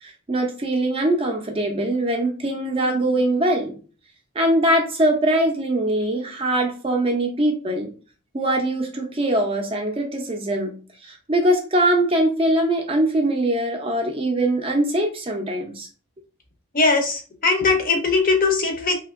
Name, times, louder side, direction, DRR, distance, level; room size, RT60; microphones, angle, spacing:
voice 1, 0.0-3.8 4.4-7.9 8.3-10.8 11.0-15.9, right 1 dB, 25° right, 3 dB, 0.4 m, -22 dB
voice 2, 16.7-19.0, left 3 dB, 40° left, 3 dB, 0.5 m, -20 dB
2.8 x 2.6 x 2.4 m, 0.38 s
head